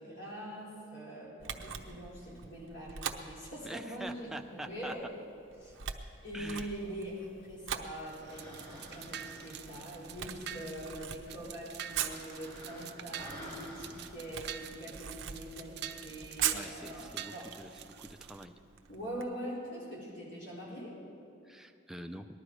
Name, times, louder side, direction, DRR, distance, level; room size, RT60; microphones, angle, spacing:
voice 1, 0.0-5.0 5.6-5.8 6.2-17.6 18.9-21.0, right 1 dB, 65° left, -6 dB, 4.5 m, -43 dB
Camera, 1.4-19.2, right 9 dB, 85° right, 0.8 m, -43 dB
voice 2, 3.6-4.9 6.3-6.7 16.5-18.6 21.4-22.3, right 1 dB, ahead, 5 dB, 0.5 m, -45 dB
sound 1, 6.3-15.5, equal, 25° left, 3.1 m, -53 dB
sound 2, 8.0-18.5, right 10 dB, 55° right, 0.5 m, -47 dB
19.5 x 12.0 x 4.8 m, 2.5 s
head